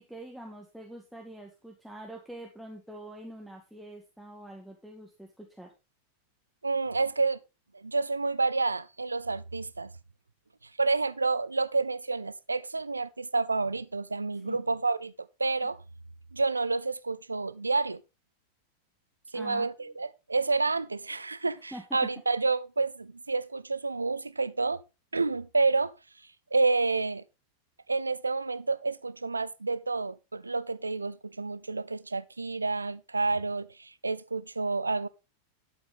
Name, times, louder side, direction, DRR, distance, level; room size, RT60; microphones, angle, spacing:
voice 1, 0.0-5.7 14.4-14.6 19.3-19.7 21.7-22.1, right 1 dB, ahead, 2.0 m, -45 dB
voice 2, 6.6-7.4 7.7-9.9 10.8-15.1 15.4-15.8 16.3-18.0 19.3-24.8 25.1-25.9 26.5-27.2 27.9-35.1, right 3 dB, 80° right, 0.6 m, -29 dB
11.5 x 8.1 x 3.6 m
figure-of-eight pair, 90°, 0 cm